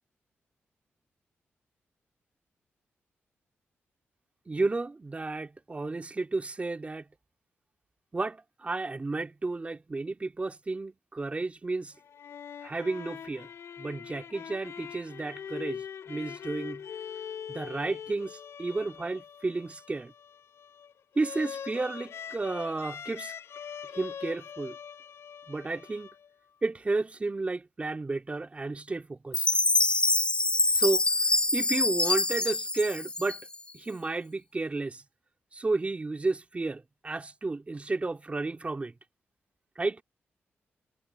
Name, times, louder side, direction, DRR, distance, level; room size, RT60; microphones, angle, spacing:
voice 1, 4.5-7.0 8.1-11.9 12.6-13.5 13.8-16.8 17.5-20.1 21.1-23.3 23.9-24.8 25.5-26.1 26.6-29.5 30.7-31.1 31.5-33.4 33.7-35.0 35.5-38.9 39.8-40.0, right 3 dB, 30° right, 3.1 m, -32 dB
sound 1, 11.9-26.6, left 8 dB, 80° left, 4.3 m, -43 dB
Chime, 29.3-33.7, left 2 dB, 20° left, 1.0 m, -25 dB
cardioid pair, 85°, 5 cm